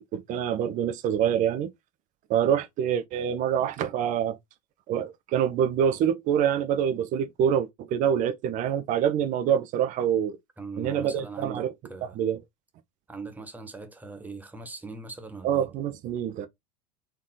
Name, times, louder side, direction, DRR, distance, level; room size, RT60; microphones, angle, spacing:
voice 1, 0.0-1.7 2.3-4.4 4.9-10.4 10.8-11.7 12.2-12.4 15.4-16.5, right 9 dB, 40° right, 0.7 m, -26 dB
voice 2, 10.6-12.2 13.1-15.7, right 4 dB, 10° right, 1.1 m, -40 dB
4.4 x 3.0 x 3.9 m
figure-of-eight pair, 75°, 21 cm